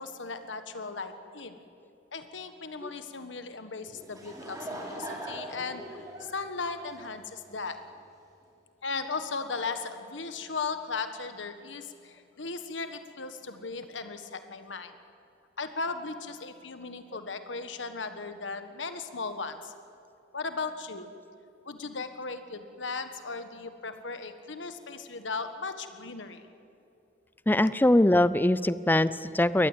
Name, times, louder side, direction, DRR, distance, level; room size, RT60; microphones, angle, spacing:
voice 1, 0.0-1.6 2.1-7.8 8.8-14.9 15.6-19.7 20.3-21.1 21.6-26.5, left 4 dB, 80° left, 9 dB, 1.5 m, -37 dB
Laughter / Crowd, 3.8-7.6, right 1 dB, 20° right, 3.7 m, -41 dB
voice 2, 27.5-29.7, left 1 dB, 10° left, 16 dB, 0.5 m, -22 dB
22.5 x 19.0 x 9.0 m, 2.6 s
head